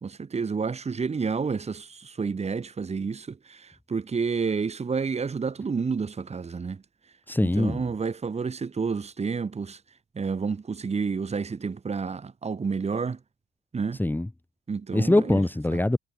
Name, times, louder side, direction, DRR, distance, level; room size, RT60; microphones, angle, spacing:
voice 1, 0.0-6.8 7.4-9.8 10.2-13.2 13.7-14.0 14.7-15.4, right 5 dB, 35° right, 3.0 m, -30 dB
voice 2, 7.3-7.9 14.0-14.3 14.9-16.0, left 1 dB, 10° left, 1.7 m, -23 dB
hypercardioid pair, 45°, 19 cm